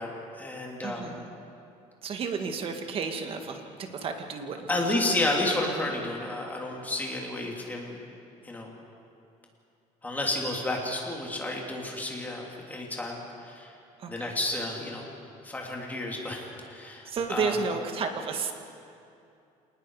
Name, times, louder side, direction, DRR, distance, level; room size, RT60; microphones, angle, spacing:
voice 1, 0.0-1.2 4.7-8.0 8.4-8.7 10.0-13.7 14.1-15.1 15.4-17.6, left 2 dB, 10° left, -1 dB, 3.2 m, -31 dB
voice 2, 0.8-1.4 2.0-5.1 14.0-14.4 17.0-18.5, right 5 dB, 40° right, 5 dB, 1.8 m, -32 dB
27.0 x 19.5 x 4.9 m, 2.6 s
cardioid pair, 145°, 14 cm